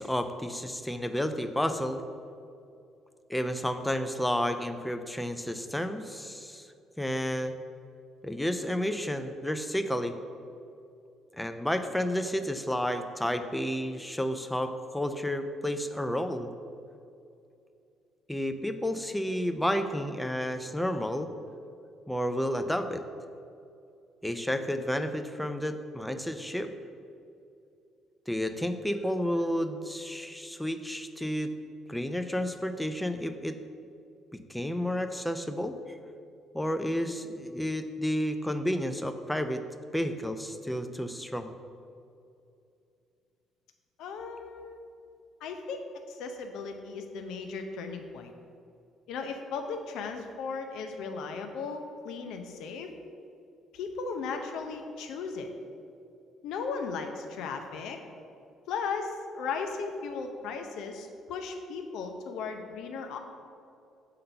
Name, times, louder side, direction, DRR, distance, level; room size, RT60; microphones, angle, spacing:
voice 1, 0.0-2.0 3.3-6.6 7.0-7.5 8.2-10.2 11.4-16.5 18.3-21.3 22.1-23.0 24.2-26.7 28.3-31.5 31.9-33.6 34.5-36.0 36.5-39.6 39.9-41.5, equal, 5° left, 8 dB, 0.5 m, -31 dB
voice 2, 44.0-44.8 45.4-45.8 46.1-48.3 49.1-52.9 53.7-55.5 56.4-58.0 58.7-63.2, left 5 dB, 70° left, 5 dB, 0.6 m, -36 dB
6.4 x 3.8 x 5.5 m, 2.5 s
hypercardioid pair, 55°, 0 cm